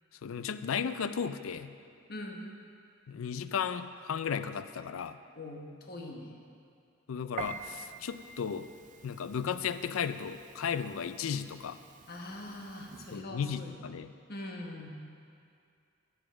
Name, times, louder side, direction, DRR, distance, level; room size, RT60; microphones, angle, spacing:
voice 1, 0.2-1.7 3.1-5.2 7.1-8.7 9.0-11.8 13.1-14.1, left 7 dB, 85° left, 12 dB, 0.4 m, -35 dB
voice 2, 2.1-2.4 5.4-6.4 12.1-13.7 14.3-14.9, left 1 dB, 50° left, 1 dB, 1.2 m, -42 dB
Piano, 7.4-13.2, right 6 dB, 40° right, 0.4 m, -48 dB
9.8 x 7.3 x 6.2 m, 2.4 s
head